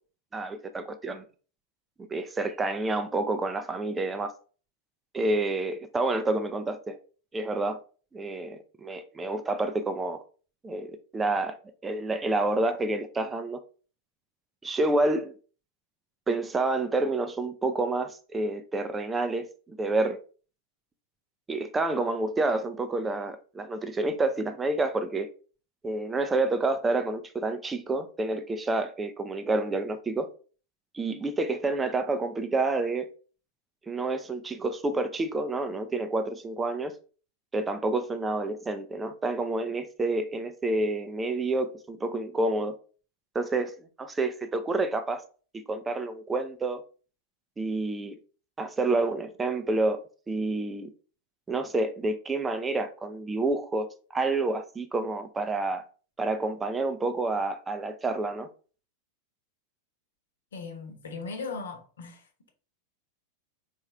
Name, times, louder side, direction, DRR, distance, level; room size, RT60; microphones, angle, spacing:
voice 1, 0.3-1.2 2.1-4.3 5.1-7.0 7.3-7.8 8.1-10.2 10.6-11.6 11.8-13.6 14.6-15.3 16.3-20.2 21.5-25.3 25.8-30.3 30.9-33.1 33.9-36.9 37.5-42.8 43.3-43.7 44.0-45.2 45.7-46.8 47.6-48.1 48.6-50.0 50.3-50.9 51.5-53.9 54.1-55.8 56.2-58.5, right 2 dB, 15° right, 0.5 m, -28 dB
voice 2, 60.5-62.5, left 4 dB, 65° left, 1.1 m, -38 dB
4.4 x 3.5 x 3.2 m
figure-of-eight pair, 90°, 0 cm